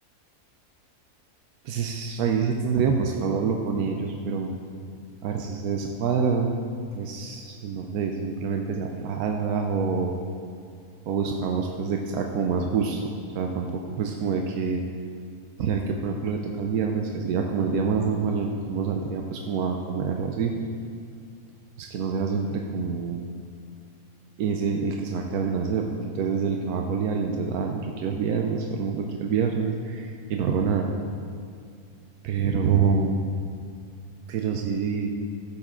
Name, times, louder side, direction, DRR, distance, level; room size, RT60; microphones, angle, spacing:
voice 1, 1.6-4.5 5.2-6.5 6.9-10.1 11.1-14.8 15.6-20.5 21.8-23.2 24.4-30.9 32.2-33.2 34.3-35.1, right 5 dB, 90° right, 2 dB, 1.2 m, -26 dB
13.5 x 7.4 x 3.8 m, 2.4 s
omnidirectional pair, 1.5 m